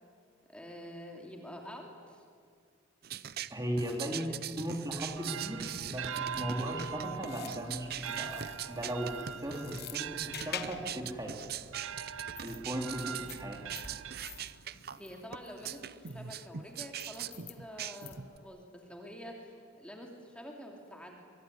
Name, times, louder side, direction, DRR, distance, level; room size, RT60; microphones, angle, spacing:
voice 1, 0.5-2.2 4.0-4.4 13.0-13.2 15.0-21.2, equal, 5° left, 1 dB, 2.9 m, -47 dB
sound 1, 3.0-18.4, right 9 dB, 50° right, 0.7 m, -42 dB
voice 2, 3.5-4.3 4.6-11.4 12.4-13.6, equal, 20° right, 2 dB, 2.9 m, -37 dB
sound 2, 4.9-14.8, right 8 dB, 90° right, 0.6 m, -43 dB
sound 3, 5.8-18.5, left 10 dB, 55° left, 1.1 m, -50 dB
23.5 x 23.5 x 9.9 m, 2.1 s
head